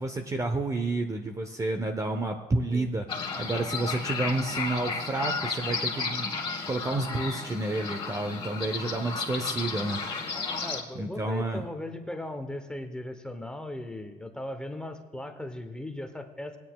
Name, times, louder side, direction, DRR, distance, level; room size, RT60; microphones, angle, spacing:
voice 1, 0.0-3.1 3.4-6.3 6.7-10.0 11.0-11.6, right 2 dB, 20° right, 5 dB, 0.6 m, -30 dB
sound 1, 3.1-10.8, left 4 dB, 30° left, 1.5 m, -33 dB
voice 2, 10.6-16.6, left 1 dB, 5° left, 6 dB, 0.9 m, -37 dB
18.0 x 9.3 x 2.3 m, 1.3 s
cardioid pair, 110°, 17 cm